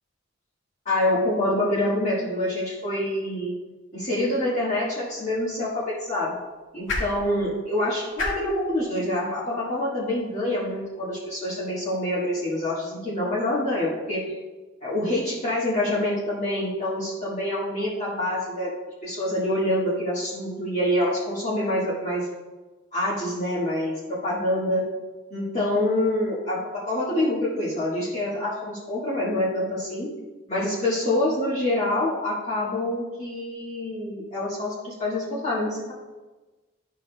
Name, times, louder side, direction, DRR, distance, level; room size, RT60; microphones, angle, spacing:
voice 1, 0.8-3.5 3.9-6.4 6.7-14.3 14.8-22.3 22.9-24.8 25.3-30.1 30.5-35.9, left 1 dB, 40° left, -8 dB, 1.5 m, -26 dB
sound 1, 5.1-11.3, left 2 dB, 90° left, 1.9 m, -37 dB
11.5 x 5.7 x 2.3 m, 1.2 s
head